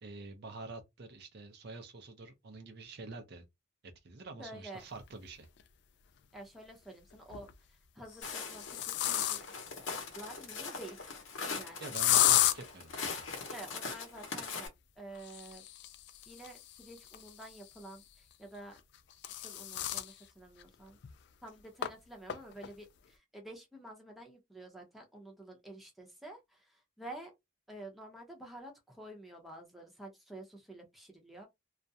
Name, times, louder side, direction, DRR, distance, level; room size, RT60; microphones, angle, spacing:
voice 1, 0.0-3.4 4.0-5.5 11.8-13.1, right 3 dB, 55° right, 0.5 m, -47 dB
voice 2, 4.4-4.8 6.3-7.5 7.9-9.4 10.1-11.0 11.5-11.9 13.5-14.7 15.0-15.6 16.3-18.8 19.4-21.0 21.4-27.3 27.7-31.5, right 1 dB, ahead, 0.7 m, -49 dB
sound 1, 5.6-5.7 7.1-7.5 8.1-9.7 11.9-12.6 15.1-17.8 18.8-20.1 20.6-20.7 21.0-21.1 21.8-21.9 22.3-22.7, left 12 dB, 60° left, 0.3 m, -32 dB
Walk footsteps, 8.2-14.7, left 4 dB, 80° left, 0.8 m, -41 dB
2.4 x 2.1 x 2.7 m
head